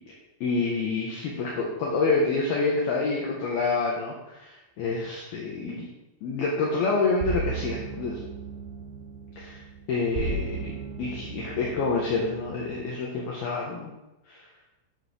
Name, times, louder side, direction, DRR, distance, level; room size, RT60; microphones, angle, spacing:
voice 1, 0.4-5.9 6.2-8.2 9.4-9.6 9.9-10.7 11.0-13.9 14.3-14.4, left 3 dB, 65° left, -2 dB, 2.6 m, -27 dB
sound 1, 7.2-12.9, right 4 dB, 85° right, 4.0 m, -36 dB
9.9 x 7.9 x 6.2 m, 0.97 s
omnidirectional pair, 6.0 m